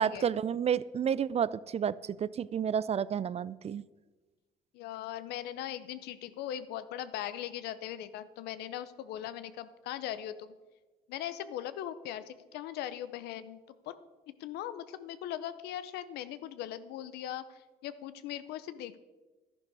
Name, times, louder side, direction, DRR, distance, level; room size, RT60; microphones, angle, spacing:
voice 1, 0.0-3.8, right 8 dB, 40° right, 19 dB, 0.4 m, -30 dB
voice 2, 4.7-10.5 11.1-13.6 13.8-14.0 14.4-19.0, left 11 dB, 85° left, 14 dB, 0.7 m, -39 dB
11.0 x 11.0 x 4.8 m, 1.2 s
supercardioid pair, 75°, 16 cm